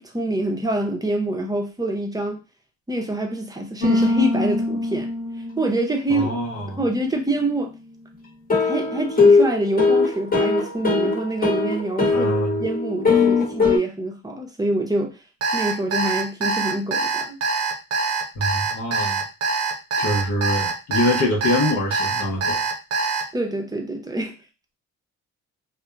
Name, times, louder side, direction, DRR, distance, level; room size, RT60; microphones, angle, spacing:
voice 1, 0.0-2.4 2.9-5.1 5.6-6.3 6.8-7.7 8.6-12.3 12.6-15.2 15.5-17.4 23.3-24.3, right 1 dB, 15° right, 0.6 m, -25 dB
sound 1, 3.8-5.7 8.5-13.8, left 4 dB, 30° left, 1.0 m, -20 dB
voice 2, 6.1-6.8 12.0-12.6 18.3-19.2 20.0-22.6, left 1 dB, 70° left, 0.8 m, -24 dB
Alarm, 15.4-23.2, right 4 dB, 55° right, 0.6 m, -24 dB
2.7 x 2.1 x 2.2 m
cardioid pair, 90°, 30 cm